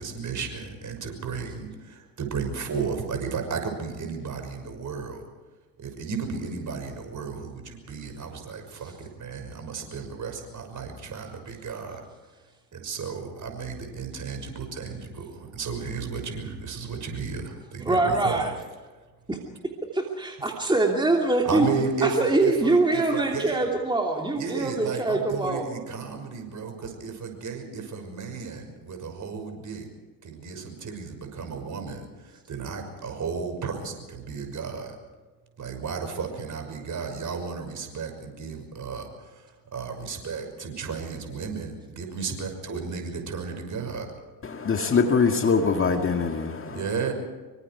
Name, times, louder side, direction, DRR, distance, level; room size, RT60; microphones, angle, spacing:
voice 1, 0.0-5.2 5.8-12.0 12.7-18.4 21.4-23.7 24.3-29.8 30.2-35.0 35.6-44.1 46.7-47.1, right 5 dB, 40° right, 6.1 m, -33 dB
voice 2, 17.8-18.5 19.3-19.4 19.9-21.7 22.0-25.6, right 2 dB, 10° right, 2.8 m, -24 dB
voice 3, 44.4-47.0, left 5 dB, 25° left, 1.9 m, -23 dB
25.5 x 24.0 x 4.8 m
hypercardioid pair, 65°, 48 cm